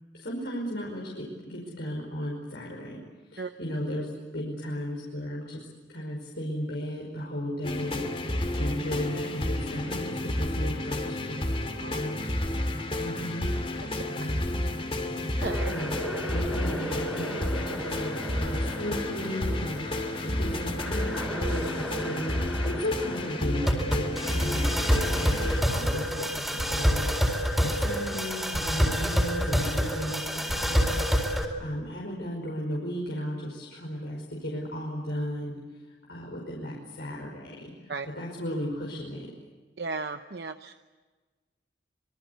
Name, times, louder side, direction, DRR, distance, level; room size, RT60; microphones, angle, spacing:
voice 1, 0.1-3.0 3.3-11.4 11.8-12.2 12.6-13.5 13.8-14.7 15.7-15.9 16.3-24.7 25.1-31.0 31.6-35.6 35.9-39.3, equal, 75° left, -2 dB, 5.4 m, -35 dB
sound 1, 7.6-25.6, left 1 dB, 30° left, 2.8 m, -31 dB
voice 2, 15.3-15.7 37.9-38.1 39.8-40.7, right 3 dB, 65° right, 7 dB, 0.9 m, -35 dB
sound 2, 15.4-31.4, equal, ahead, 4.2 m, -29 dB
26.5 x 23.0 x 8.2 m, 1.3 s
head